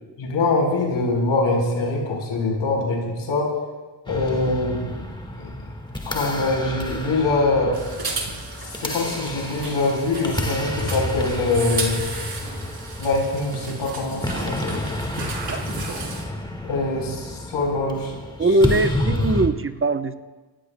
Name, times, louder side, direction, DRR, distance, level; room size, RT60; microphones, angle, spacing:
voice 1, 0.2-3.5 4.1-5.0 5.4-5.5 6.0-7.7 8.8-12.0 13.0-14.8 16.7-18.1, left 2 dB, 85° left, 0 dB, 4.2 m, -23 dB
sound 1, 4.1-19.5, left 1 dB, 10° left, 1.7 m, -30 dB
sound 2, 7.7-16.3, right 3 dB, 50° right, 3.5 m, -34 dB
voice 2, 18.4-20.2, right 2 dB, 25° right, 9 dB, 0.9 m, -21 dB
28.5 x 16.5 x 2.2 m, 1.3 s
cardioid pair, 70°, 48 cm